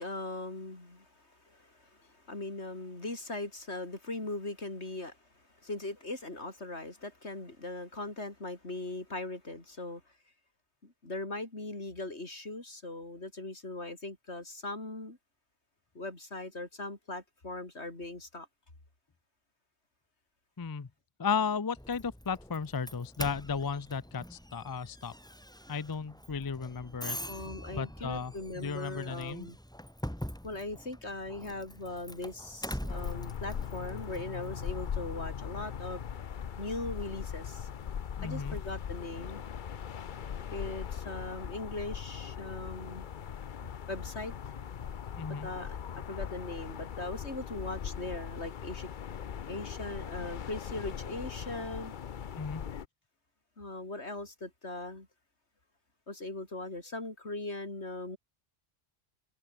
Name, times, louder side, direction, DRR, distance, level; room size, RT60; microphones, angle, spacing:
voice 1, 0.0-10.0 10.8-15.2 16.0-18.5 27.3-29.6 30.4-36.0 36.6-37.7 38.2-39.4 40.5-43.1 43.9-44.3 45.4-45.8 46.1-48.9 49.5-51.9 53.6-55.1 56.1-58.2, left 2 dB, 80° left, 5.2 m, -40 dB
voice 2, 20.6-20.9 21.2-25.1 25.7-27.2 27.8-29.5 38.2-38.6 45.2-45.5 52.4-52.7, left 5 dB, 25° left, 0.5 m, -34 dB
Doorbell, 21.8-34.9, equal, 5° left, 2.3 m, -44 dB
sound 1, 32.9-52.9, left 8 dB, 50° left, 0.8 m, -40 dB
omnidirectional pair, 1.1 m